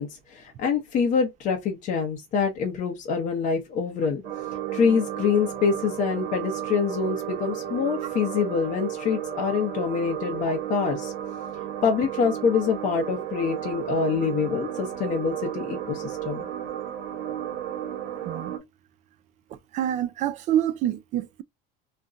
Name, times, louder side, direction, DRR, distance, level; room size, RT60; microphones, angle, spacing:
voice 1, 0.0-4.2 4.7-11.1 11.8-16.5, left 6 dB, 40° left, 0.7 m, -25 dB
sound 1, 4.2-18.6, right 10 dB, 60° right, 0.9 m, -33 dB
voice 2, 19.7-21.4, right 11 dB, 35° right, 0.4 m, -26 dB
2.4 x 2.1 x 3.8 m
cardioid pair, 150°, 21 cm